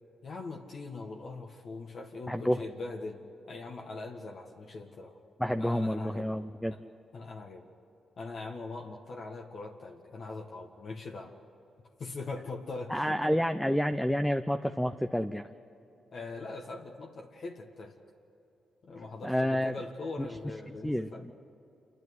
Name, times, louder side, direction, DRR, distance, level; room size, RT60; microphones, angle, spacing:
voice 1, 0.2-5.2 5.6-6.3 6.7-6.8 7.1-7.7 8.2-11.3 12.0-13.2 16.1-17.9 18.8-21.2, left 3 dB, 60° left, 1 dB, 1.7 m, -41 dB
voice 2, 2.3-2.6 5.4-6.8 12.9-15.5 19.2-19.7 20.2-20.3 20.8-21.3, equal, 5° left, 8 dB, 0.7 m, -29 dB
27.5 x 12.0 x 9.6 m, 2.9 s
cardioid pair, 65°, 0 cm